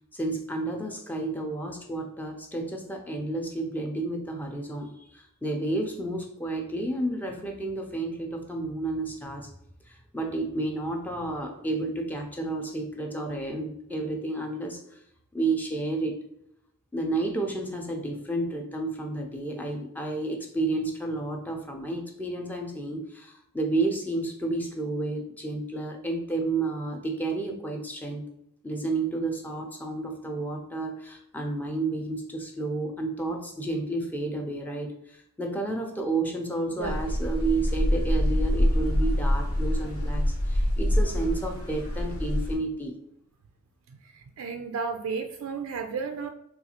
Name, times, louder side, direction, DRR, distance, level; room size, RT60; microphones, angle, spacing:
voice 1, 0.1-9.5 9.9-15.0 15.3-16.2 16.9-28.3 28.6-42.9, right 2 dB, 10° left, 2 dB, 0.5 m, -31 dB
sound 1, 36.8-42.6, equal, 85° left, 0.9 m, -25 dB
voice 2, 43.9-46.3, right 5 dB, 80° right, 5 dB, 0.3 m, -33 dB
3.8 x 2.4 x 2.8 m, 0.77 s
head